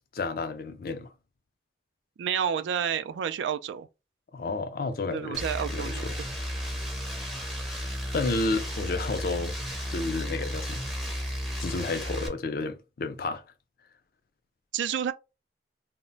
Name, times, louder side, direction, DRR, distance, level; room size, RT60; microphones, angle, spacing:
voice 1, 0.1-1.1 4.3-5.4 5.7-6.2 8.1-9.5 9.9-10.9 11.6-13.4, left 3 dB, 50° left, 0.4 m, -31 dB
voice 2, 2.2-3.9 5.1-6.1 14.7-15.1, right 8 dB, 90° right, 0.3 m, -29 dB
sound 1, 5.3-12.3, equal, ahead, 0.5 m, -33 dB
2.1 x 2.1 x 3.8 m
head